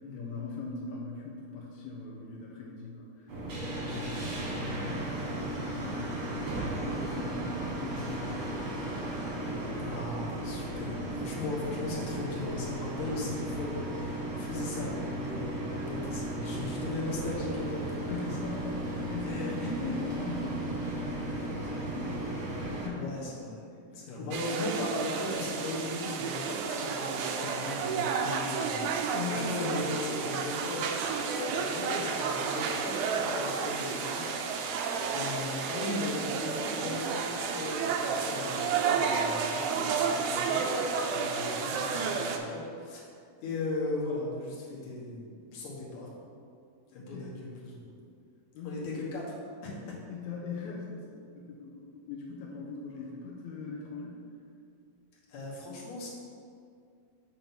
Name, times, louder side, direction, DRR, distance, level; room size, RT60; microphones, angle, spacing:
voice 1, 0.1-9.0 18.1-23.2 24.0-24.3 28.8-29.5 47.0-47.3 48.6-49.0 50.1-54.2, left 4 dB, 80° left, -3 dB, 1.8 m, -40 dB
sound 1, 3.3-22.9, right 1 dB, 55° right, 1.5 m, -35 dB
voice 2, 3.8-4.2 9.8-17.9 18.2-18.4 19.2-19.9 21.1-21.9 22.9-23.6 23.9-34.8 35.1-40.6 40.9-43.1 43.4-46.1 46.9-48.0 48.6-49.4 49.6-49.8 55.3-56.1, left 2 dB, 60° left, -4 dB, 2.4 m, -38 dB
sound 2, 24.3-42.4, right 5 dB, 85° right, 1.7 m, -31 dB
7.0 x 3.8 x 5.7 m, 2.4 s
omnidirectional pair, 4.1 m